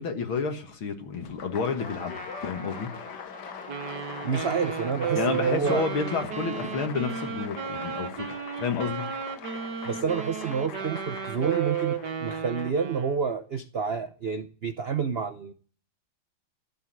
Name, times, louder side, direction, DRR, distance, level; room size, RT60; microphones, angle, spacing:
voice 1, 0.0-2.9 5.1-8.3 8.6-9.1, left 5 dB, 80° left, 2.5 m, -30 dB
Applause, 1.1-13.0, left 7 dB, 60° left, 1.6 m, -43 dB
Trumpet, 1.8-7.9, left 2 dB, 5° left, 1.9 m, -46 dB
Wind instrument woodwind instrument, 3.7-13.3, right 7 dB, 55° right, 1.9 m, -33 dB
voice 2, 4.2-5.8 9.8-15.5, right 6 dB, 80° right, 0.5 m, -29 dB
14.5 x 8.3 x 9.4 m
omnidirectional pair, 2.2 m